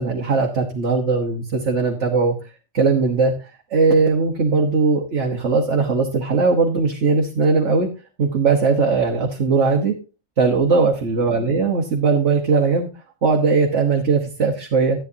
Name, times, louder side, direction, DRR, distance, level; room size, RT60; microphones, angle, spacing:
voice 1, 0.0-2.3 2.7-7.9 8.2-10.0 10.4-12.9 13.2-15.0, right 4 dB, 55° right, 0 dB, 1.5 m, -19 dB
13.5 x 9.2 x 2.8 m, 0.32 s
omnidirectional pair, 1.5 m